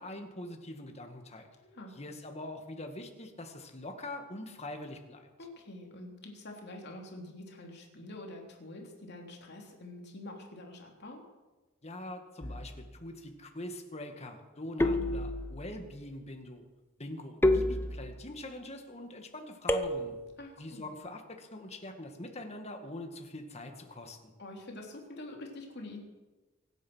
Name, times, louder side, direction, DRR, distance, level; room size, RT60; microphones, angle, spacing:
voice 1, 0.0-1.5 1.9-5.3 11.8-16.6 17.0-20.2 20.6-24.3, left 1 dB, 30° left, 5 dB, 1.9 m, -43 dB
voice 2, 1.6-1.9 5.4-11.2 20.4-20.9 24.4-26.0, left 1 dB, 50° left, 1 dB, 3.3 m, -46 dB
sound 1, 12.4-12.9 14.8-15.7 17.4-18.4 19.7-20.4, left 1 dB, 10° left, 0.8 m, -30 dB
24.0 x 9.1 x 6.3 m, 1.2 s
head